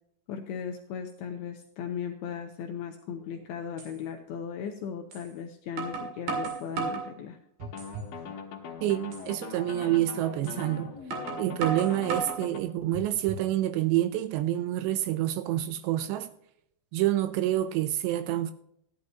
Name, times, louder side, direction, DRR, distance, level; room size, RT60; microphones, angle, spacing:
voice 1, 0.3-7.4, left 7 dB, 80° left, 2.3 m, -37 dB
sound 1, 3.2-3.3 3.8-3.9 5.1-5.3 5.8-7.1 7.6-8.1 8.5-8.6 9.1-9.3 10.4-10.6 11.1-12.4 12.9-13.5, right 5 dB, 55° right, 3.6 m, -34 dB
sound 2, 7.6-12.6, left 6 dB, 65° left, 2.6 m, -41 dB
voice 2, 8.8-10.9 11.4-16.3 16.9-18.5, right 14 dB, 80° right, 2.6 m, -27 dB
15.0 x 11.0 x 2.8 m
omnidirectional pair, 5.3 m